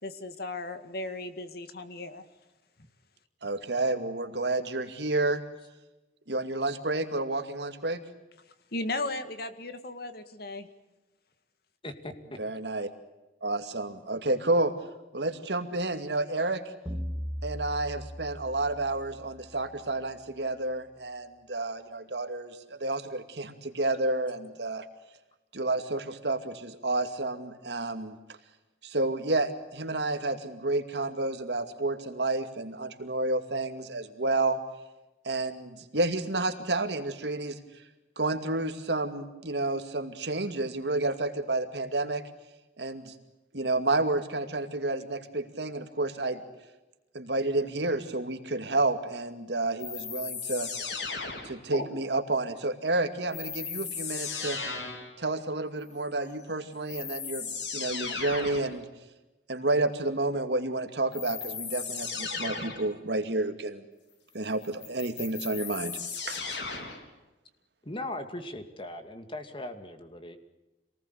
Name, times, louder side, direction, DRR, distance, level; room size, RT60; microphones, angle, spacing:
voice 1, 0.0-2.3 8.7-10.7, left 2 dB, 60° left, 10 dB, 2.0 m, -36 dB
voice 2, 3.4-5.4 6.3-8.0 12.4-12.9 13.4-14.7 15.1-16.6 17.4-24.8 25.5-28.2 28.8-34.6 35.2-37.6 38.2-42.2 42.8-43.1 43.5-46.4 47.1-50.7 51.4-54.6 55.2-58.9 59.5-63.8 64.3-66.0 66.3-66.4, right 2 dB, 70° right, 7 dB, 2.4 m, -30 dB
voice 3, 11.8-12.4 67.8-70.4, left 1 dB, 30° left, 8 dB, 2.4 m, -39 dB
sound 1, 16.9-19.6, equal, 10° right, 3.1 m, -38 dB
sound 2, 49.8-51.8 53.3-55.1 56.4-56.5 56.9-58.7 61.1-62.9 64.6-67.1, left 5 dB, 80° left, 4.1 m, -36 dB
27.0 x 19.5 x 8.3 m, 1.0 s
head